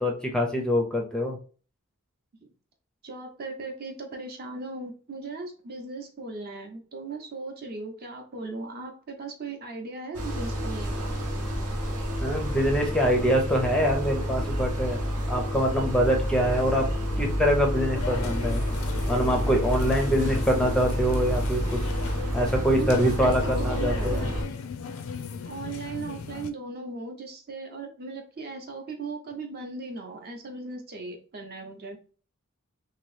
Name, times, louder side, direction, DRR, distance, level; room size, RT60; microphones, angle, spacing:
voice 1, 0.0-1.4 12.2-15.0 15.3-16.8 17.2-18.6 19.1-21.8 22.3-24.3, equal, 5° left, 1 dB, 0.5 m, -24 dB
voice 2, 3.0-11.2 22.8-24.3 25.4-32.0, right 3 dB, 45° right, 4 dB, 0.7 m, -37 dB
sound 1, 10.1-24.4, equal, 75° right, 0.8 m, -29 dB
sound 2, 17.9-26.5, left 5 dB, 65° left, 0.4 m, -37 dB
2.9 x 2.8 x 3.1 m, 0.39 s
head